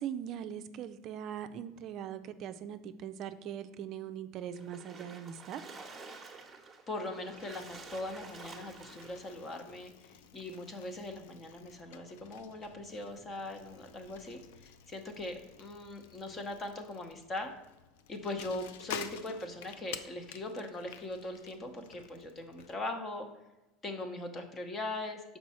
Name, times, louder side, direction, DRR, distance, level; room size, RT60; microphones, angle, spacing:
voice 1, 0.0-5.6, right 9 dB, 50° right, 9 dB, 0.4 m, -41 dB
Splash splatter, 4.5-9.4, right 4 dB, 15° right, 1.0 m, -50 dB
voice 2, 6.9-17.5 18.1-23.3 23.8-25.4, left 2 dB, 25° left, 6 dB, 0.9 m, -40 dB
Bicycle, 7.2-22.7, left 8 dB, 80° left, 0.4 m, -50 dB
6.0 x 4.7 x 4.3 m, 1.0 s
supercardioid pair, 110°, 0 cm